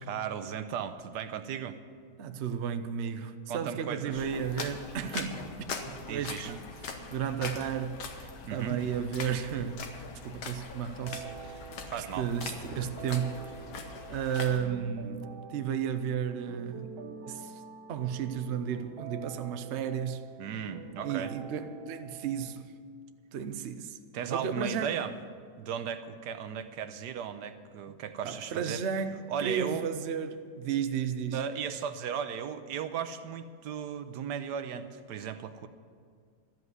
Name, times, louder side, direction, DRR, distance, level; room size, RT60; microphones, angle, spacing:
voice 1, 0.1-1.8 3.5-4.3 6.0-6.5 8.5-8.8 11.9-12.3 20.4-21.3 24.1-25.1 25.6-28.8 29.3-29.9 31.3-35.7, right 8 dB, 90° right, 1.4 m, -36 dB
voice 2, 2.2-6.6 7.1-9.9 10.2-11.6 12.2-13.5 14.1-16.9 17.3-17.6 17.9-20.2 21.0-22.7 23.3-24.0 24.3-24.9 28.2-31.4, right 7 dB, 55° right, 0.8 m, -33 dB
sound 1, 4.1-14.6, left 4 dB, 85° left, 1.7 m, -42 dB
sound 2, 11.0-22.7, right 6 dB, 75° right, 1.3 m, -47 dB
12.5 x 8.0 x 9.5 m
omnidirectional pair, 1.8 m